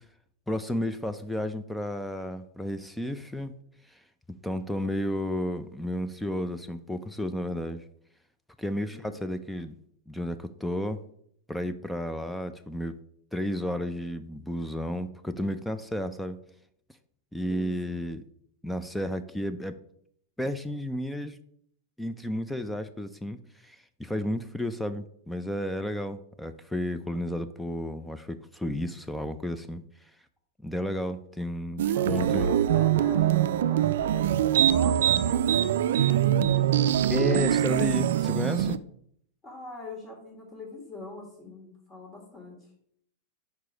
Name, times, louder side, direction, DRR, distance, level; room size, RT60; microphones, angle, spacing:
voice 1, 0.5-3.5 3.9-4.0 4.4-7.8 8.6-9.7 10.1-11.0 11.5-12.9 13.3-16.4 17.3-18.2 18.6-19.8 20.4-21.4 22.0-29.8 30.6-32.5 37.1-38.8, left 1 dB, 5° left, 10 dB, 0.4 m, -32 dB
voice 2, 17.5-18.0 31.9-36.5 39.4-42.7, left 2 dB, 25° left, 0 dB, 1.8 m, -42 dB
sound 1, 31.8-38.8, right 10 dB, 75° right, 0.3 m, -23 dB
4.7 x 4.7 x 5.0 m, 0.68 s
hypercardioid pair, 130°, 0 cm